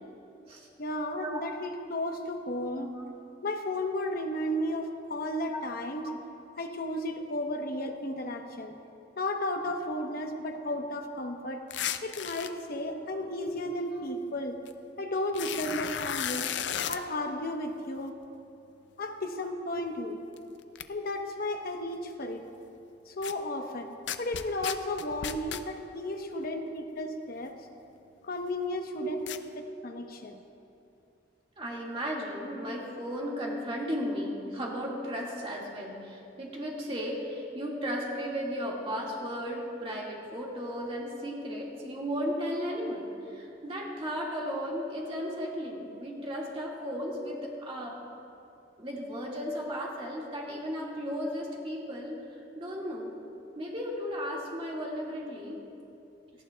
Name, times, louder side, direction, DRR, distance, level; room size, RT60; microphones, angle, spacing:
voice 1, 0.8-2.9 3.4-6.0 6.6-8.8 9.2-11.6 12.0-14.6 15.0-16.5 16.9-18.2 19.0-20.2 20.9-22.4 23.1-23.9 24.2-26.6 27.0-27.5 28.3-29.2 29.8-30.4, left 1 dB, 55° left, 4 dB, 0.9 m, -33 dB
voice 2, 2.8-3.1 5.5-5.6 6.0-6.2 13.4-13.5 19.7-19.8 26.3-26.4 29.0-29.1 31.6-48.0 48.8-53.1 53.6-55.6, equal, 30° right, -3 dB, 1.8 m, -35 dB
sound 1, 11.7-12.5 14.7-14.8 15.3-17.0 20.4-20.5 20.7-20.8 23.2-23.3 24.1-25.6 29.3-29.4, left 9 dB, 70° left, 0.5 m, -34 dB
18.0 x 14.0 x 2.3 m, 2.7 s
head